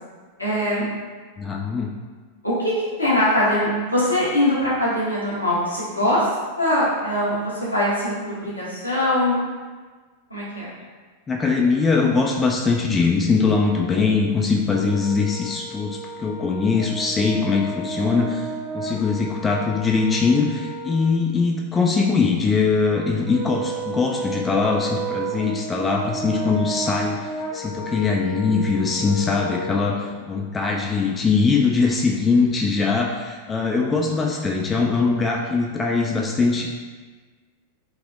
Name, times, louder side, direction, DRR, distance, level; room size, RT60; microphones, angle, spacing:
voice 1, 0.4-0.8 2.4-2.7 3.0-6.3 6.6-9.4 10.3-10.7 30.0-30.1, left 1 dB, 85° left, -8 dB, 0.9 m, -22 dB
voice 2, 1.4-1.9 11.3-18.5 18.7-36.7, left 4 dB, 20° left, 0 dB, 0.3 m, -21 dB
Brass instrument, 14.7-21.2 23.3-29.8, right 2 dB, 10° right, 0.7 m, -32 dB
3.3 x 2.9 x 2.4 m, 1.4 s
figure-of-eight pair, 90°, 0 cm